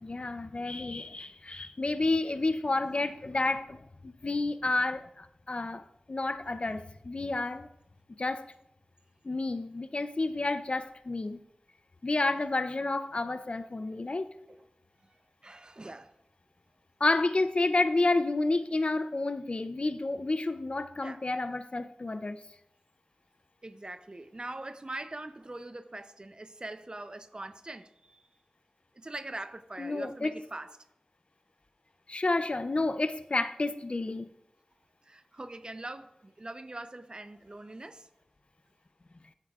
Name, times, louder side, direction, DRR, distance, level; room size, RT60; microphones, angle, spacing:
voice 1, 0.0-5.8 6.1-7.7 8.2-8.4 9.2-11.4 12.0-14.3 17.0-22.4 29.8-30.4 32.1-34.3, left 2 dB, 50° left, 0.5 m, -30 dB
voice 2, 15.4-16.1 21.0-21.2 23.6-28.2 28.9-30.8 35.0-38.1, right 2 dB, 35° right, 0.6 m, -42 dB
13.0 x 8.1 x 2.4 m
cardioid pair, 45°, 2 cm